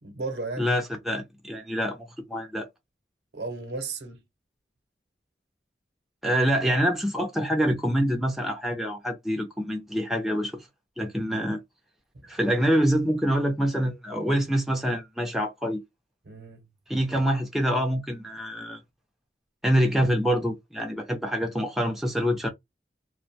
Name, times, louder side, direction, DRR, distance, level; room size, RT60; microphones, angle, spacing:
voice 1, 0.0-0.7 3.3-4.2 11.3-11.5 12.1-12.2 16.2-16.6, right 3 dB, 70° right, 0.8 m, -35 dB
voice 2, 0.6-2.7 6.2-10.6 11.0-11.6 12.2-15.8 16.9-18.8 19.6-22.5, equal, ahead, 0.5 m, -26 dB
2.3 x 2.1 x 2.6 m
head